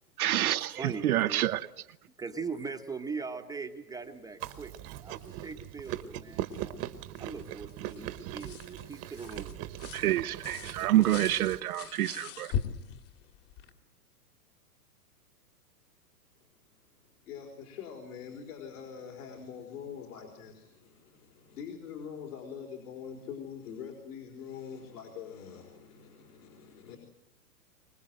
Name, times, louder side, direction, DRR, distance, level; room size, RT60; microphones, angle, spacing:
voice 1, 0.2-1.7 9.9-12.5, right 14 dB, 65° right, 0.8 m, -27 dB
voice 2, 0.8-1.5 2.2-6.8 7.2-9.7, right 5 dB, 10° right, 1.1 m, -40 dB
Chewing mastication, 4.4-11.6, right 12 dB, 30° right, 1.3 m, -40 dB
sound 1, 4.5-4.8 5.2-5.3 5.8-6.1 6.5-13.7, left 8 dB, 50° left, 2.7 m, -41 dB
voice 3, 17.3-27.0, left 7 dB, 65° left, 4.9 m, -44 dB
25.0 x 20.0 x 7.8 m
hypercardioid pair, 130°, 47 cm